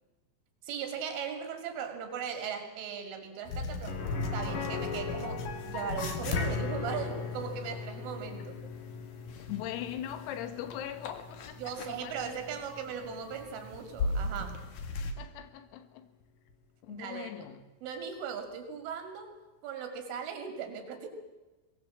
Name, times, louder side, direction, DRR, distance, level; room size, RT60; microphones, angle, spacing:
voice 1, 0.6-4.0 4.3-8.6 11.6-14.6 16.9-17.5 17.8-19.3 19.6-21.1, right 7 dB, 70° right, 4.8 m, -38 dB
sound 1, 3.5-15.1, left 3 dB, 70° left, 1.8 m, -39 dB
sound 2, 3.9-13.6 14.0-14.1 16.5-16.6, left 5 dB, 50° left, 3.1 m, -39 dB
voice 2, 9.5-11.6 11.9-12.4 15.2-16.1 16.8-17.6, left 11 dB, 85° left, 4.2 m, -40 dB
23.0 x 19.0 x 7.3 m
omnidirectional pair, 6.0 m